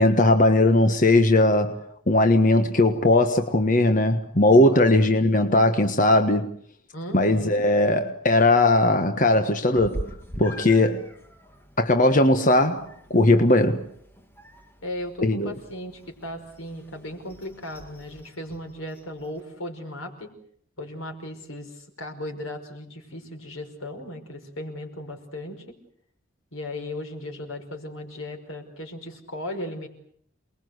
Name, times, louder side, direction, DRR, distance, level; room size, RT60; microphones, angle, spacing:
voice 1, 0.0-1.8 2.1-6.5 7.1-10.0 10.4-11.0 11.8-12.8 13.1-13.8 15.2-15.5, left 2 dB, 40° left, 1.4 m, -19 dB
voice 2, 6.9-7.6 14.8-20.3 20.8-25.8 26.5-29.9, left 1 dB, 85° left, 5.5 m, -36 dB
Meow, 9.7-19.4, equal, 10° left, 2.4 m, -43 dB
28.5 x 21.0 x 8.0 m
head